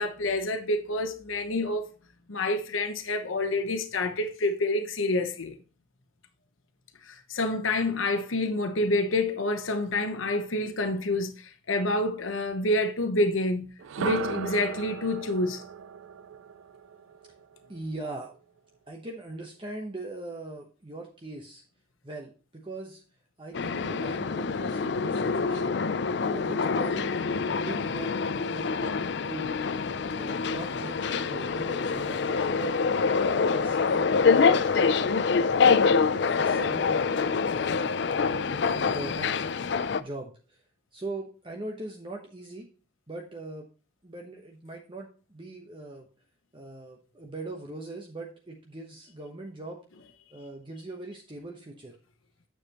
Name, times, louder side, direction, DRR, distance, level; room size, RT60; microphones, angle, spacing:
voice 1, 0.0-1.9 2.3-5.5 7.1-13.7 14.0-15.6, left 2 dB, 80° left, 1.0 m, -28 dB
sound 1, 13.8-17.8, right 6 dB, 80° right, 0.4 m, -36 dB
voice 2, 17.7-18.3 18.9-21.6 22.0-23.0 23.4-25.8 26.2-27.2 27.5-29.6 30.1-32.8 33.2-34.9 35.3-35.6 36.3-37.0 37.5-39.5 40.0-40.6 40.9-42.7 43.1-43.7 44.0-46.1 46.5-49.8 50.3-52.0, right 2 dB, 25° right, 1.0 m, -41 dB
sound 2, 23.5-40.0, left 5 dB, 55° left, 0.4 m, -26 dB
9.4 x 6.9 x 3.0 m
head